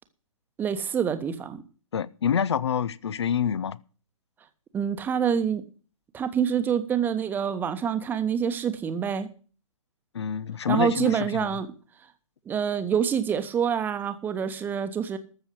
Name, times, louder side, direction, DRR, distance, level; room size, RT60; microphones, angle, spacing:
voice 1, 0.6-1.6 4.7-5.6 6.1-9.3 10.7-11.7 12.5-15.2, right 7 dB, 10° right, 1.1 m, -26 dB
voice 2, 1.9-3.8 10.1-11.5, left 8 dB, 55° left, 0.8 m, -27 dB
13.5 x 7.0 x 8.1 m
figure-of-eight pair, 125°, 17 cm